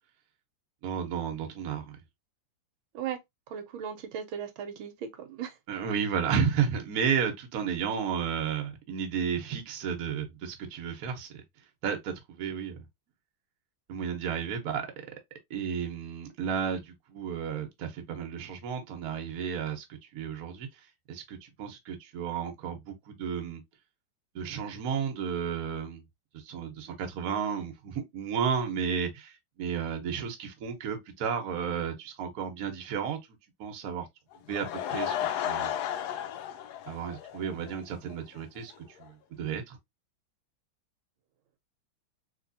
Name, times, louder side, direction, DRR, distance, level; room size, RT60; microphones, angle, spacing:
voice 1, 0.8-2.0 5.7-11.3 11.8-12.9 13.9-14.9 15.5-19.8 20.1-20.7 21.1-23.6 24.3-26.0 26.3-33.2 33.6-34.1 34.5-35.1 35.4-35.7 36.8-38.7 39.0-39.8, right 7 dB, 60° right, 1.1 m, -32 dB
voice 2, 3.5-5.5, right 8 dB, 80° right, 1.4 m, -37 dB
Laughter / Crowd, 34.3-37.8 38.1-38.2 38.7-38.8 39.0-39.1, left 10 dB, 80° left, 0.9 m, -33 dB
3.3 x 2.9 x 2.5 m
omnidirectional pair, 2.2 m